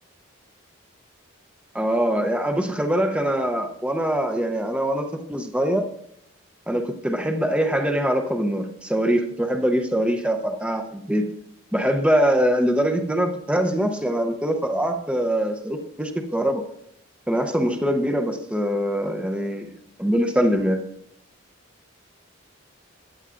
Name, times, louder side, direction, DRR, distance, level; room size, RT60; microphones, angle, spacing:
voice 1, 1.7-5.9 6.7-11.3 11.7-16.6 17.3-19.7 20.0-20.8, equal, 5° right, 5 dB, 0.7 m, -23 dB
15.0 x 9.7 x 2.5 m, 0.74 s
head